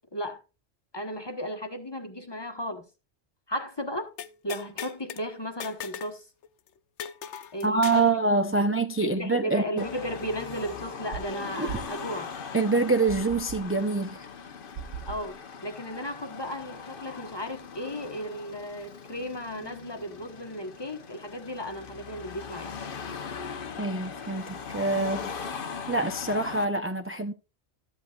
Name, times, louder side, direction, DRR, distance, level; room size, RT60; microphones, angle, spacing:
voice 1, 0.1-0.4 0.9-2.9 3.5-4.1 4.4-6.2 7.5-8.1 8.5-8.7 9.0-12.3 15.0-22.8, equal, 25° left, 1.2 m, -35 dB
sound 1, 4.2-5.2 5.6-6.2 6.4-6.5 7.0-8.1, left 8 dB, 85° left, 1.0 m, -38 dB
voice 2, 7.6-9.9 11.6-11.7 12.5-14.3 23.8-25.3 25.9-27.3, right 3 dB, 15° right, 0.5 m, -25 dB
Car passing by / Traffic noise roadway noise / Engine, 9.8-26.7, left 6 dB, 55° left, 1.0 m, -40 dB
sound 2, 11.1-11.3 11.7-12.0 13.1-13.7 14.8-15.3, right 9 dB, 70° right, 0.9 m, -39 dB
13.0 x 8.2 x 2.4 m
omnidirectional pair, 1.1 m